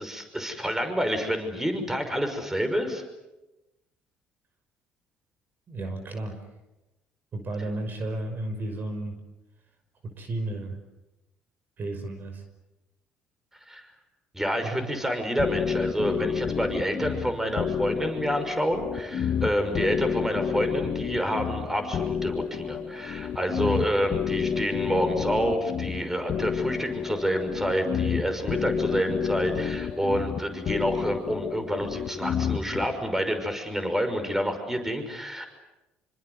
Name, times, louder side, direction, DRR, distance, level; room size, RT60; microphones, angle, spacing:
voice 1, 0.0-3.0 13.7-13.9 14.3-35.5, equal, 10° right, 7 dB, 6.0 m, -28 dB
voice 2, 5.7-6.4 7.3-9.2 10.0-10.8 11.8-12.4 14.6-14.9, right 2 dB, 45° right, 7 dB, 5.7 m, -33 dB
sound 1, 15.4-32.8, left 7 dB, 55° left, 2.3 m, -30 dB
27.0 x 25.5 x 8.2 m, 0.99 s
supercardioid pair, 70°, 4 cm